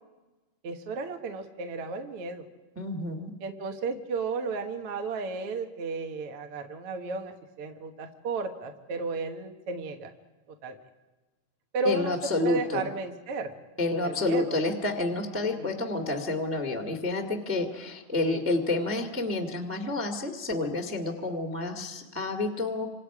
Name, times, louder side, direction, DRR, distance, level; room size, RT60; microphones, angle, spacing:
voice 1, 0.6-2.5 3.4-10.1 10.6-10.8 11.7-12.1 12.4-13.5 13.9-14.6 15.4-15.8 18.2-18.4, right 3 dB, 50° right, 5 dB, 2.1 m, -33 dB
voice 2, 2.7-3.3 11.8-12.9 13.8-22.9, left 2 dB, 5° right, 2 dB, 1.1 m, -29 dB
28.5 x 27.0 x 5.0 m, 1.2 s
omnidirectional pair, 3.9 m